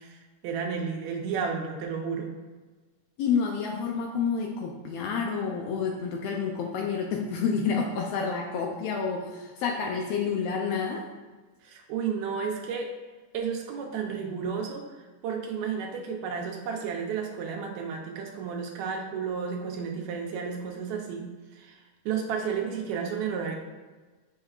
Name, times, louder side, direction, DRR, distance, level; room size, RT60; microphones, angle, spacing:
voice 1, 0.0-2.3 11.6-12.9 13.3-14.9 15.2-21.2 21.5-23.6, right 6 dB, 75° right, 2 dB, 1.9 m, -32 dB
voice 2, 3.2-11.1, left 5 dB, 90° left, 1 dB, 1.4 m, -29 dB
8.6 x 5.5 x 2.4 m, 1.3 s
omnidirectional pair, 3.5 m